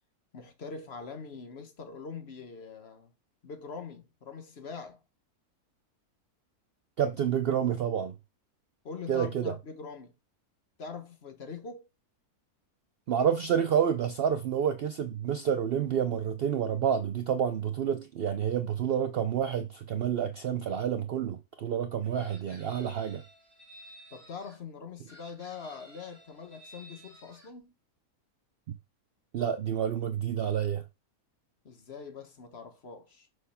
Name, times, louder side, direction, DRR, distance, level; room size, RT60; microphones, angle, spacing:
voice 1, 0.3-3.1 3.4-5.0 8.8-10.1 10.8-11.9 24.1-27.7 31.6-33.3, left 5 dB, 50° left, 1.1 m, -43 dB
voice 2, 7.0-8.1 9.1-9.5 13.1-23.2 28.7-28.8 29.3-30.8, right 8 dB, 90° right, 0.5 m, -29 dB
Chicken rooster, 22.1-24.6 25.1-27.5, right 1 dB, 25° left, 3.1 m, -53 dB
6.2 x 3.1 x 5.7 m
omnidirectional pair, 1.6 m